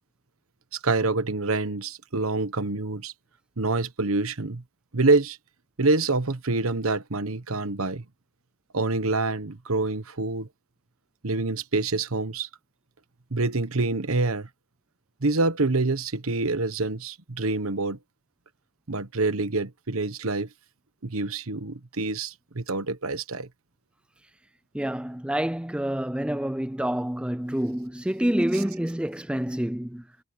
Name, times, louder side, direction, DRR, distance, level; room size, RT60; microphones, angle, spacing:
voice 1, 0.7-3.1 3.6-4.6 4.9-5.4 5.8-8.0 8.7-10.5 11.2-12.5 13.3-14.5 15.2-18.0 18.9-20.5 21.0-23.5 28.5-28.6, right 3 dB, 80° right, 1.2 m, -26 dB
voice 2, 24.7-30.0, right 1 dB, 5° right, 0.4 m, -27 dB
head